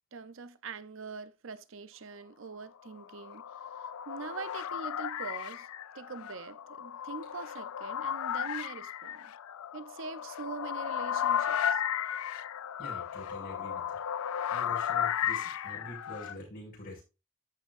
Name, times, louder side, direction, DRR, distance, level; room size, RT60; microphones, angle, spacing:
voice 1, 0.1-5.7 5.9-9.3 9.7-11.8, right 5 dB, 65° right, 0.6 m, -43 dB
sound 1, 2.9-16.4, left 9 dB, 85° left, 0.4 m, -34 dB
voice 2, 12.8-14.0 14.5-17.0, left 1 dB, 40° left, 5.9 m, -45 dB
14.0 x 5.5 x 2.5 m
head